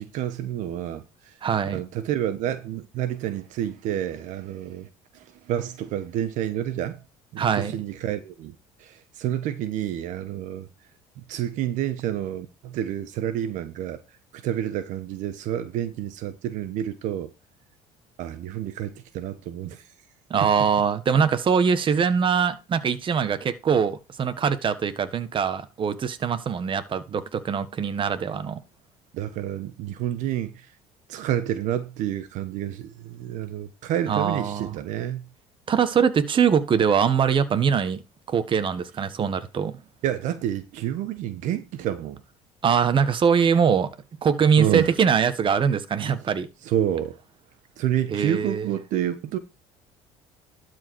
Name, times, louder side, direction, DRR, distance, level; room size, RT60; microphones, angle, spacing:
voice 1, 0.0-1.4 1.7-7.0 7.3-8.5 8.8-10.7 11.3-14.0 14.3-17.3 18.2-19.8 29.1-30.7 31.1-35.3 40.0-42.2 44.6-44.9 46.6-47.2 47.8-49.4, right 11 dB, 70° right, 1.3 m, -29 dB
voice 2, 1.4-1.8 7.4-7.7 20.3-28.6 34.1-34.7 35.7-38.0 38.3-39.8 42.6-43.9 44.2-46.5 48.1-48.7, right 7 dB, 40° right, 1.6 m, -22 dB
12.5 x 4.9 x 4.7 m
supercardioid pair, 100°, 13 cm